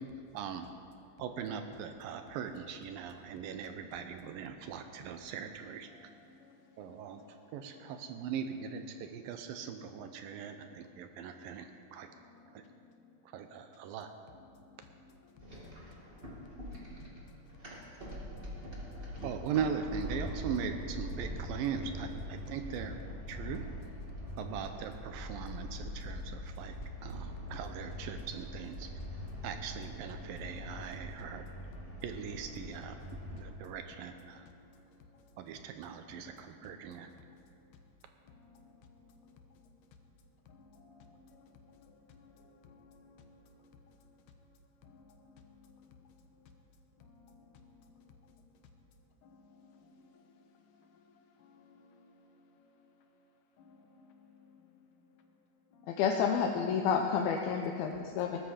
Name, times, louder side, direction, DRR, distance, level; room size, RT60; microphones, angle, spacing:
voice 1, 0.3-0.7 1.2-5.9 6.8-7.2 7.5-12.1 12.5-12.6 13.3-14.1 19.2-23.0 23.3-23.7 24.4-26.8 27.0-28.9 29.4-31.4 32.0-33.0 33.3-34.5 35.4-37.1, right 7 dB, 80° right, 7 dB, 2.4 m, -40 dB
voice 2, 5.9-6.6 6.8-8.2 10.0-11.0 12.2-12.8 14.5-15.3 15.9-16.2 16.5-17.1 18.6-19.2 23.3-23.5 24.2-24.4 25.3-25.7 27.4-27.5 31.7-32.0 33.4-33.6 34.3-34.4 36.1-37.4 38.4-39.0 39.3-39.4 40.5-43.4 44.8-46.1 47.1-47.7 48.0-48.1 49.2-49.9 51.4-52.0 53.6-54.6 55.7-56.0 58.0-58.2, left 4 dB, 70° left, 4 dB, 2.5 m, -59 dB
sound 1, 15.4-33.5, equal, 20° right, 1.7 m, -43 dB
voice 3, 55.9-58.4, left 6 dB, 85° left, 2 dB, 2.7 m, -30 dB
19.0 x 13.0 x 5.0 m, 2.4 s
omnidirectional pair, 4.2 m